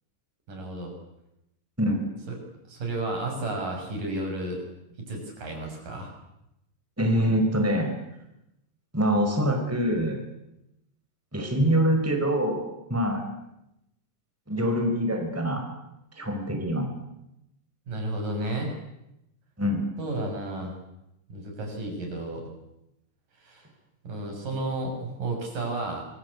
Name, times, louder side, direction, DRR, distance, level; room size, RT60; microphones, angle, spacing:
voice 1, 0.5-0.9 2.3-2.4 2.7-4.6 5.1-6.1 17.9-18.7 20.0-20.7 21.3-22.5 23.4-23.7 24.0-26.1, right 2 dB, 70° right, 2 dB, 8.2 m, -32 dB
voice 2, 7.0-7.9 8.9-10.2 11.3-12.6 12.9-13.2 14.5-15.7 16.2-16.9 19.6-19.8, equal, 5° right, 3 dB, 5.1 m, -24 dB
26.0 x 22.5 x 8.5 m, 0.86 s
omnidirectional pair, 3.9 m